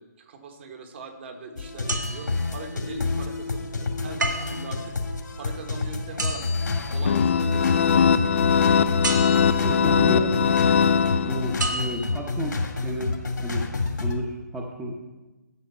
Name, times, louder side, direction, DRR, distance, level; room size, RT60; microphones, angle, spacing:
voice 1, 0.0-5.0 5.4-8.2, right 3 dB, 40° right, 5 dB, 1.4 m, -41 dB
sound 1, 1.6-14.2, left 3 dB, 85° left, 2.1 m, -28 dB
sound 2, 1.9-2.9 4.2-4.8 6.2-7.5 9.0-9.8 11.6-12.3 12.9-13.0, right 2 dB, 80° right, 1.9 m, -32 dB
sound 3, 7.1-11.8, left 7 dB, 40° left, 0.5 m, -21 dB
voice 2, 9.5-10.4 11.2-13.7 14.0-15.0, equal, 5° right, 0 dB, 0.8 m, -31 dB
11.5 x 6.8 x 5.5 m, 1.1 s
hypercardioid pair, 160°, 10 cm